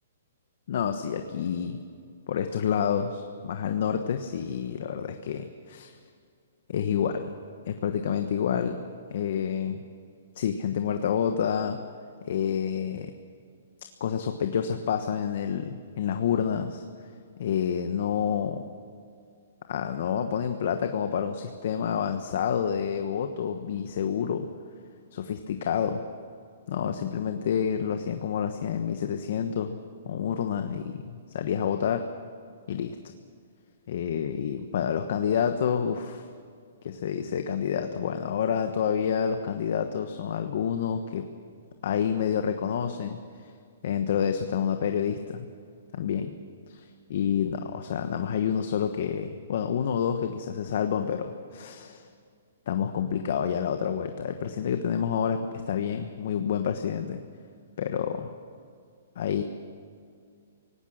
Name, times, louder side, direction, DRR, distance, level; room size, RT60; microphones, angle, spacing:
voice 1, 0.7-1.8 2.3-5.9 6.7-7.3 7.7-8.8 9.1-9.8 10.3-11.8 12.3-13.1 14.0-16.8 17.4-18.7 19.7-24.5 25.1-26.1 26.7-32.0 32.7-33.0 33.9-36.3 36.8-41.3 41.8-43.5 43.8-45.5 45.9-46.3 46.7-52.1 52.7-57.2 57.8-58.3 59.2-59.4, left 8 dB, 55° left, 7 dB, 1.2 m, -28 dB
24.5 x 18.5 x 6.4 m, 2.3 s
hypercardioid pair, 165°, 0 cm